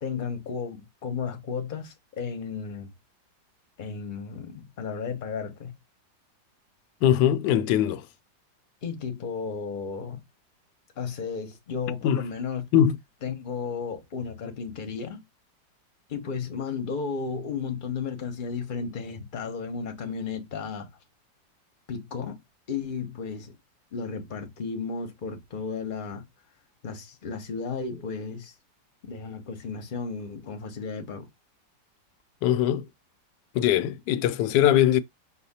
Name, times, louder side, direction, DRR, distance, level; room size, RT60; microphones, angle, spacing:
voice 1, 0.0-2.9 3.8-5.7 8.8-10.2 11.0-12.6 13.2-15.2 16.1-20.9 21.9-22.4 22.7-23.5 23.9-26.2 26.8-28.5 29.0-31.3, left 5 dB, 40° left, 0.8 m, -33 dB
voice 2, 7.0-8.1 12.0-12.2 12.7-13.0 32.4-32.9 33.5-35.0, left 10 dB, 75° left, 1.2 m, -21 dB
5.5 x 2.1 x 4.1 m
omnidirectional pair, 2.0 m